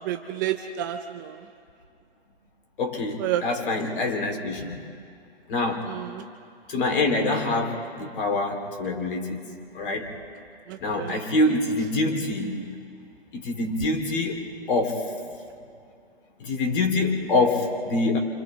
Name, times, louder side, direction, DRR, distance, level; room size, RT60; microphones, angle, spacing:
voice 1, 0.0-1.3 3.2-3.4 5.9-6.2 10.7-11.2, right 12 dB, 20° right, 6 dB, 0.4 m, -30 dB
voice 2, 2.8-4.8 5.5-5.9 6.7-9.4 9.7-10.1 10.8-12.6 13.3-15.1 16.4-18.2, left 2 dB, 55° left, 3 dB, 3.4 m, -25 dB
30.0 x 27.0 x 3.5 m, 2.4 s
hypercardioid pair, 145°, 31 cm